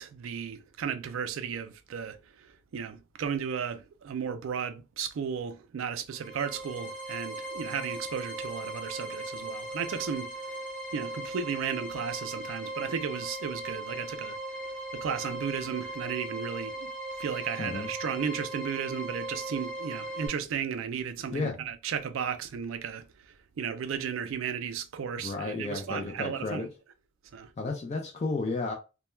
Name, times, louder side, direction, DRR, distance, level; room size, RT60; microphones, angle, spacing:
voice 1, 0.0-10.5 10.9-14.4 14.9-16.9 17.2-26.7 27.3-27.5, right 7 dB, 65° right, 0.3 m, -34 dB
sound 1, 6.1-20.3, right 1 dB, 5° left, 0.7 m, -38 dB
voice 2, 17.6-17.9 21.3-21.5 25.2-26.7 27.6-28.7, left 3 dB, 30° left, 0.3 m, -32 dB
2.2 x 2.1 x 3.0 m
head